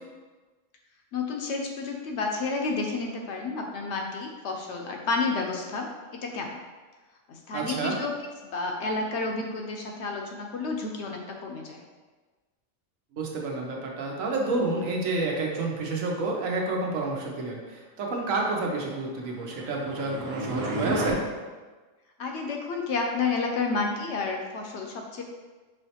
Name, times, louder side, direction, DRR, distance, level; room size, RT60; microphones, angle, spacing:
voice 1, 1.1-5.9 6.1-6.5 7.3-8.1 8.4-11.8 22.2-25.2, left 4 dB, 65° left, 1 dB, 0.8 m, -30 dB
voice 2, 7.5-8.0 13.1-21.2, right 3 dB, 80° right, -1 dB, 1.2 m, -29 dB
sound 1, 19.2-21.1, right 1 dB, 55° right, 1.1 m, -32 dB
5.4 x 3.1 x 2.8 m, 1.3 s
omnidirectional pair, 1.4 m